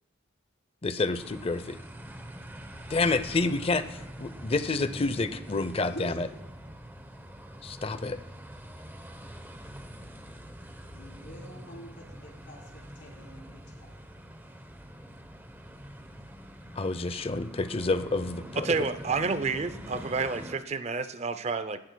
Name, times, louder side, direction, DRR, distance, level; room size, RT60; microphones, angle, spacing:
voice 1, 0.8-1.8 2.9-6.3 7.6-8.2 16.8-18.9, left 3 dB, 30° left, 13 dB, 0.5 m, -29 dB
sound 1, 1.2-20.5, equal, 10° right, 0.8 m, -44 dB
voice 2, 5.8-6.2 10.9-14.0, equal, 65° left, -3 dB, 3.4 m, -46 dB
voice 3, 18.6-21.8, right 4 dB, 35° right, 12 dB, 0.4 m, -30 dB
17.0 x 12.0 x 2.2 m, 1.1 s
head